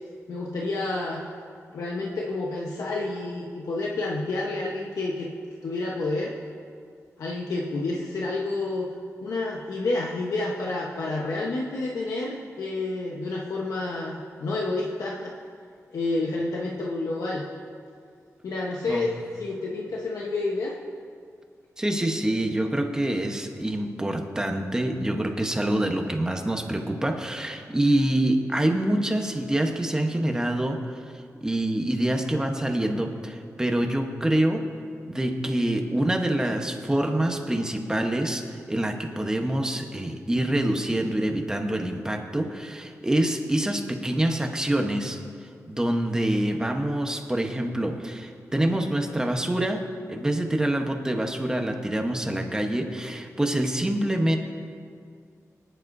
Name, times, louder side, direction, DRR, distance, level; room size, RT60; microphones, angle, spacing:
voice 1, 0.3-1.3 1.7-5.3 5.6-6.3 7.2-8.9 9.2-15.3 15.9-17.4 18.4-20.7, left 2 dB, 90° left, -3 dB, 1.1 m, -29 dB
voice 2, 21.8-31.1 31.4-34.6 35.1-38.4 38.7-45.2 45.7-49.8 50.1-54.4, right 1 dB, 10° right, 3 dB, 1.0 m, -26 dB
24.0 x 10.0 x 2.7 m, 2.3 s
wide cardioid pair, 140°, 6 cm